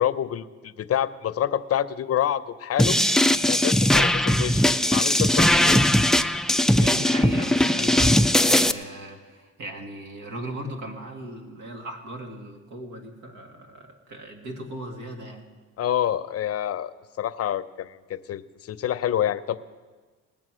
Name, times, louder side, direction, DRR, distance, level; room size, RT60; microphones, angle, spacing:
voice 1, 0.0-3.0 3.5-5.8 15.8-16.9 17.2-19.6, left 10 dB, 50° left, 13 dB, 0.6 m, -27 dB
sound 1, 2.8-8.7, left 1 dB, ahead, 0.3 m, -20 dB
voice 2, 6.8-15.5, right 1 dB, 80° right, 3 dB, 1.9 m, -37 dB
20.0 x 7.3 x 6.2 m, 1.4 s
cardioid pair, 90°, 30 cm